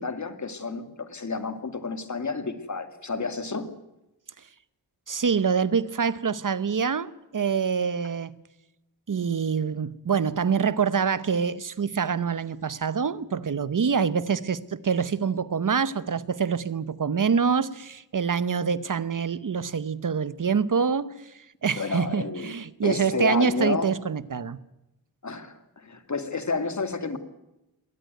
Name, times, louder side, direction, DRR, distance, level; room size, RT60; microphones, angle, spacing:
voice 1, 0.0-3.7 21.8-22.5 22.8-23.9 25.2-27.2, left 4 dB, 45° left, 10 dB, 2.3 m, -30 dB
voice 2, 5.1-8.3 9.1-24.6, right 6 dB, 50° right, 16 dB, 0.9 m, -26 dB
21.5 x 18.5 x 9.4 m, 0.92 s
wide cardioid pair, 135°, 39 cm